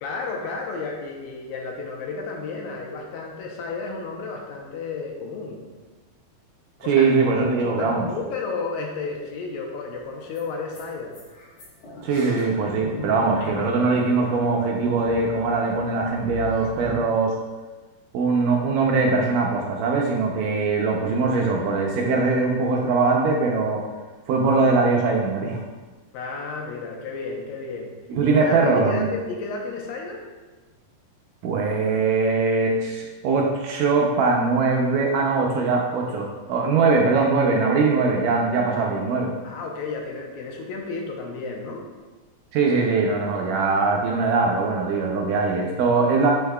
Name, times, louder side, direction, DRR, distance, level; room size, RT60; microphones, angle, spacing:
voice 1, 0.0-5.6 6.8-11.1 26.1-27.9 28.2-30.2 39.4-41.8, left 4 dB, 75° left, 0 dB, 2.5 m, -32 dB
voice 2, 6.8-8.1 12.0-17.3 18.1-23.8 24.3-25.6 28.1-29.1 31.4-39.3 42.5-46.3, right 4 dB, 75° right, 0 dB, 2.0 m, -21 dB
sound 1, 10.0-10.1 10.3-10.4 10.7-10.8 11.1-17.0, equal, 50° left, 1.6 m, -38 dB
8.3 x 6.3 x 2.3 m, 1.3 s
omnidirectional pair, 4.2 m